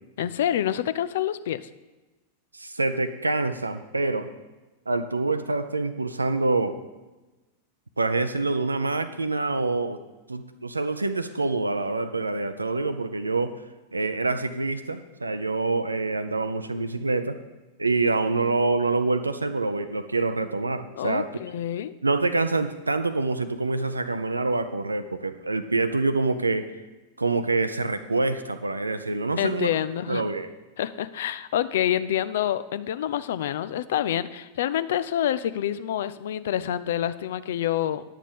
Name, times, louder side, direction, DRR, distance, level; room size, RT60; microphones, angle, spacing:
voice 1, 0.2-1.7 21.0-21.9 29.4-30.3 30.8-38.0, left 11 dB, 55° left, 15 dB, 0.4 m, -27 dB
voice 2, 2.5-4.3 4.9-6.8 8.0-10.0 10.3-13.6 13.9-17.4 17.8-21.3 22.0-26.7 27.2-29.7 30.1-30.5, right 3 dB, 80° right, 10 dB, 0.5 m, -26 dB
10.0 x 7.4 x 5.2 m, 1.1 s
figure-of-eight pair, 90°, 0 cm